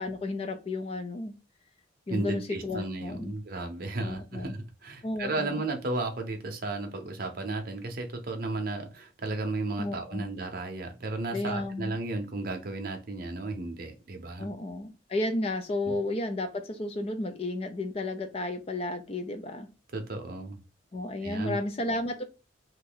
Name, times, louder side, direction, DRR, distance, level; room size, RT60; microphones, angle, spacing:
voice 1, 0.0-1.3 2.1-3.4 4.0-4.6 5.0-5.6 9.8-10.3 11.3-12.0 14.4-19.7 20.9-22.2, left 2 dB, 30° left, 0.4 m, -33 dB
voice 2, 2.1-14.5 15.9-16.0 19.9-20.6 21.2-21.6, right 2 dB, 50° right, 0.7 m, -34 dB
3.0 x 2.6 x 3.8 m
head